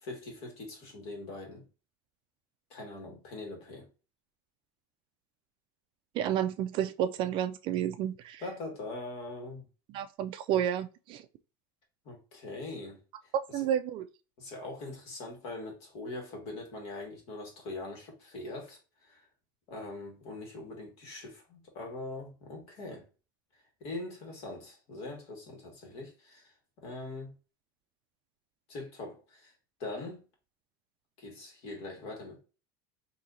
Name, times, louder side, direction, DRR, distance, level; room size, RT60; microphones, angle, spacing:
voice 1, 0.0-1.6 2.7-3.9 8.4-9.7 12.1-13.7 14.4-19.3 19.7-23.1 23.8-26.5 26.8-27.3 28.7-29.5 29.8-30.2 31.2-32.4, left 2 dB, 55° left, 1.8 m, -42 dB
voice 2, 6.1-8.4 9.9-11.2 13.5-14.1, right 10 dB, 45° right, 0.3 m, -31 dB
4.2 x 2.8 x 2.6 m
supercardioid pair, 125°, 12 cm